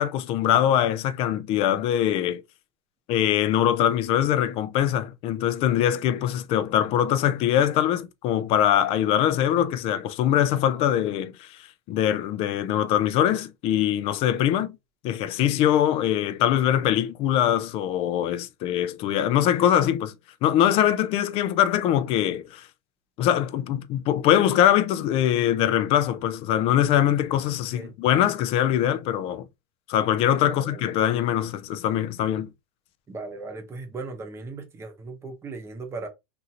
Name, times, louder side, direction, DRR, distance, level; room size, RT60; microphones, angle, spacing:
voice 1, 0.0-2.4 3.1-14.7 15.0-20.1 20.4-22.7 23.2-29.4 29.9-32.5, left 11 dB, 40° left, 0.5 m, -23 dB
voice 2, 30.5-30.9 33.1-36.1, right 3 dB, 20° right, 0.9 m, -37 dB
2.7 x 2.5 x 2.9 m
hypercardioid pair, 120°, 15 cm